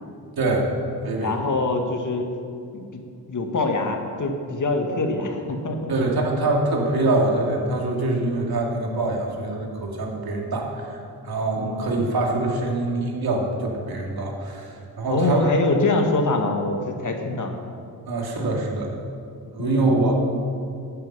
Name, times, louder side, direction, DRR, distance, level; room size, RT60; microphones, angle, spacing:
voice 1, 0.4-0.7 1.0-1.3 5.9-11.0 11.2-15.5 18.1-18.9 19.5-20.1, right 2 dB, 60° right, 0 dB, 2.6 m, -24 dB
voice 2, 1.2-2.3 2.7-3.0 3.3-5.9 11.6-12.0 15.1-17.6 19.6-19.9, left 2 dB, 45° left, 4 dB, 1.8 m, -24 dB
11.5 x 9.0 x 5.5 m, 2.4 s
supercardioid pair, 50°, 43 cm